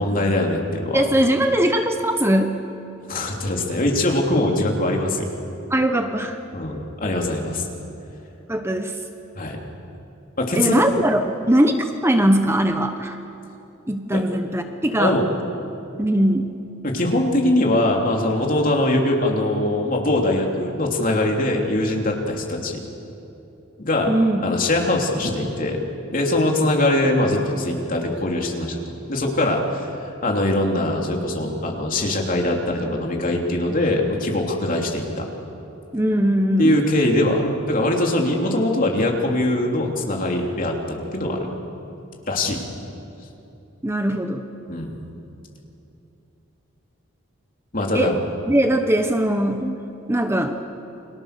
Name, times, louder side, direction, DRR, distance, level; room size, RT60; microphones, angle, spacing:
voice 1, 0.0-1.0 3.1-5.3 6.5-7.7 9.3-9.6 10.4-10.9 14.1-14.2 15.0-15.2 16.8-22.8 23.8-24.1 24.4-25.8 26.1-28.8 29.1-29.9 30.2-35.3 36.6-41.5 42.3-42.6 44.7-45.0 47.7-48.1, left 1 dB, 45° left, 0 dB, 3.3 m, -22 dB
voice 2, 0.9-2.6 5.7-6.4 8.5-9.0 10.5-13.2 13.9-15.2 16.0-16.5 24.1-24.4 35.9-36.8 43.8-44.4 47.9-48.2 48.5-49.8 50.1-50.6, right 1 dB, 15° right, 6 dB, 1.0 m, -20 dB
29.5 x 24.0 x 6.9 m, 2.8 s
head